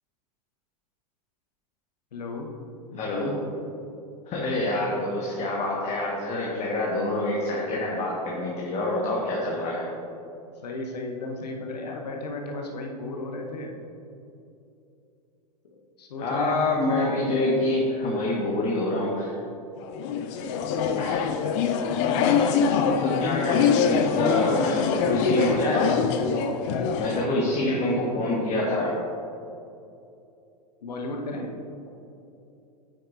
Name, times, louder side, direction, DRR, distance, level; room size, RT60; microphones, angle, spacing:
voice 1, 2.1-2.5 2.9-3.0 10.6-13.7 15.8-16.7 27.0-27.9 30.8-31.5, left 2 dB, 80° left, 1 dB, 0.9 m, -35 dB
voice 2, 3.0-3.3 4.3-9.9 16.2-19.3 21.0-21.2 23.0-25.8 27.0-28.9, left 2 dB, 30° left, -4 dB, 1.2 m, -26 dB
sound 1, 19.8-27.3, left 6 dB, 50° left, 0.6 m, -24 dB
9.0 x 6.0 x 2.5 m, 2.7 s
hypercardioid pair, 95°, 21 cm